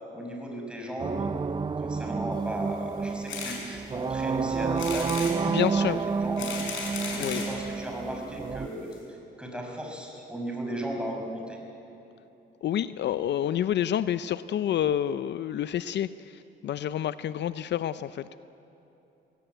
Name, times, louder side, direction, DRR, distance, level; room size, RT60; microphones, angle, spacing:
voice 1, 0.1-1.3 1.8-6.5 7.0-11.6, equal, 5° right, 1 dB, 5.4 m, -36 dB
sound 1, 1.0-8.7, right 5 dB, 25° right, 0.5 m, -30 dB
sound 2, 3.3-3.6 4.1-4.2 4.8-5.4 6.1-7.5 8.3-8.4 8.6-8.7 8.9-9.0, left 5 dB, 80° left, 5.8 m, -35 dB
voice 2, 5.5-6.0 7.2-7.4 12.6-18.3, left 10 dB, 65° left, 14 dB, 0.5 m, -29 dB
20.5 x 17.0 x 9.2 m, 3.0 s
cardioid pair, 90°, 20 cm